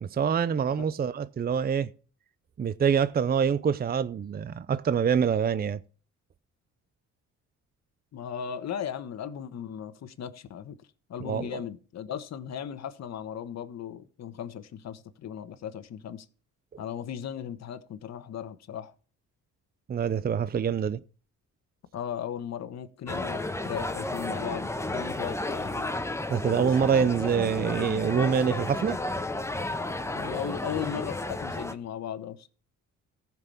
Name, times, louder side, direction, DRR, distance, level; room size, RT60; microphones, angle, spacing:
voice 1, 0.0-1.9 2.6-5.8 11.2-11.6 19.9-21.0 26.3-29.0, right 7 dB, 30° right, 0.6 m, -25 dB
voice 2, 8.1-10.8 11.1-16.3 16.8-18.9 21.9-25.9 26.4-26.9 30.1-32.5, left 9 dB, 60° left, 1.3 m, -37 dB
sound 1, 23.1-31.7, left 2 dB, 10° left, 1.1 m, -32 dB
14.5 x 6.0 x 7.0 m
cardioid pair, 90°, 30 cm